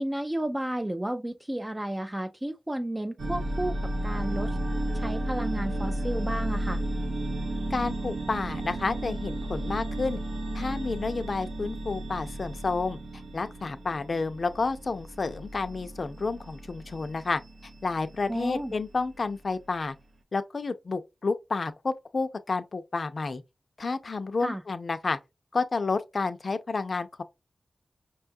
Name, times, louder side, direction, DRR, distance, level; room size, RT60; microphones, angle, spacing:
voice 1, 0.0-4.6 4.9-6.8 18.3-18.7 24.4-24.6, right 1 dB, 15° right, 0.3 m, -32 dB
sound 1, 3.2-19.2, right 1 dB, 75° right, 0.6 m, -33 dB
voice 2, 7.7-10.2 10.5-13.0 13.3-17.4 17.8-20.0 20.3-23.4 23.8-25.2 25.5-27.2, left 3 dB, 55° left, 0.5 m, -30 dB
5.4 x 2.3 x 2.6 m
wide cardioid pair, 100°, 0 cm